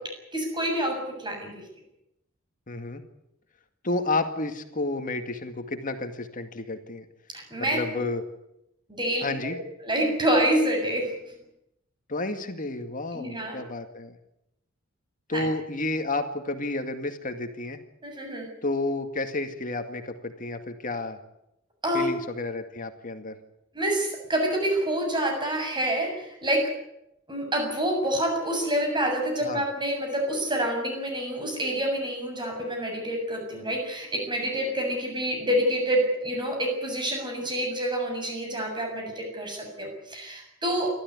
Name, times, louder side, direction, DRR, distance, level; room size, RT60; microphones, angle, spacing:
voice 1, 0.3-1.5 7.3-8.0 8.9-9.5 9.8-11.1 13.1-13.6 15.3-15.5 18.0-18.5 21.8-22.1 23.7-26.6 27.3-40.9, right 1 dB, 25° right, 2 dB, 7.2 m, -27 dB
voice 2, 2.7-3.0 3.8-7.0 7.6-8.2 9.2-9.6 12.1-14.2 15.3-17.8 18.6-21.2 21.9-23.4 29.4-29.6, left 2 dB, 40° left, 7 dB, 2.1 m, -31 dB
29.0 x 13.0 x 9.7 m, 0.84 s
head